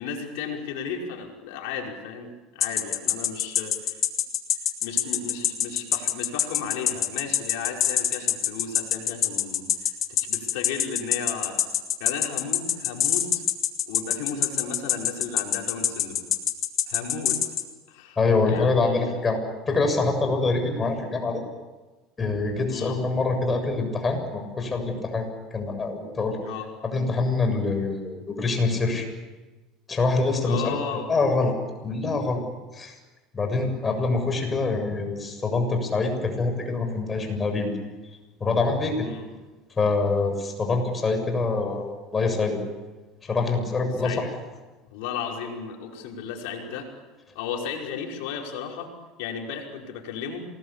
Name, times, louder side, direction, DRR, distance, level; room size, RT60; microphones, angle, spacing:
voice 1, 0.0-4.0 4.8-11.6 12.0-13.4 13.9-16.2 16.9-17.4 17.9-18.2 18.5-19.2 22.7-23.0 26.4-26.7 30.4-31.1 39.0-39.3 44.0-44.3 44.9-46.9 47.3-48.9 49.2-50.5, left 6 dB, 75° left, 1 dB, 5.5 m, -34 dB
sound 1, 2.6-17.6, left 10 dB, 45° left, 3.2 m, -24 dB
voice 2, 18.2-19.4 19.7-21.4 22.2-25.3 25.5-26.4 26.8-29.1 29.9-30.8 31.1-31.5 31.8-32.4 32.7-32.9 33.3-37.7 38.4-39.1 39.8-42.6 43.2-44.3, left 3 dB, 25° left, 5 dB, 7.2 m, -25 dB
27.0 x 20.5 x 8.5 m, 1.2 s
supercardioid pair, 105°, 0 cm